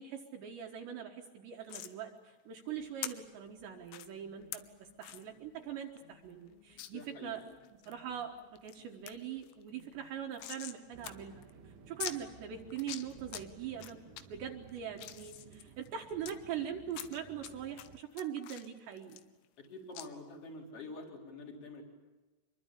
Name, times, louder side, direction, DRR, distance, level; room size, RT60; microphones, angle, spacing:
voice 1, 0.0-7.4 7.9-19.2, right 9 dB, 70° right, 1 dB, 3.3 m, -42 dB
sound 1, 1.7-1.9 3.0-3.1 3.9-4.1 4.5-4.6 5.0-5.2 5.6-5.7 6.0-6.1 6.8-6.9 7.4-8.0 8.4-8.8 9.1-9.2 9.4-10.8 11.0-11.1 11.4-11.5 12.0-12.2 12.7-13.4 13.8-14.2 14.7-16.3 16.9-17.5 17.8-19.7 20.0-20.1, left 14 dB, 90° left, 3.8 m, -43 dB
sound 2, 2.8-15.7, left 6 dB, 65° left, 5.7 m, -65 dB
voice 2, 6.7-7.4 19.6-21.8, left 2 dB, 30° left, 1 dB, 4.5 m, -47 dB
sound 3, 10.9-18.0, right 7 dB, 90° right, 4.1 m, -56 dB
26.0 x 23.0 x 8.5 m, 1.2 s
omnidirectional pair, 5.9 m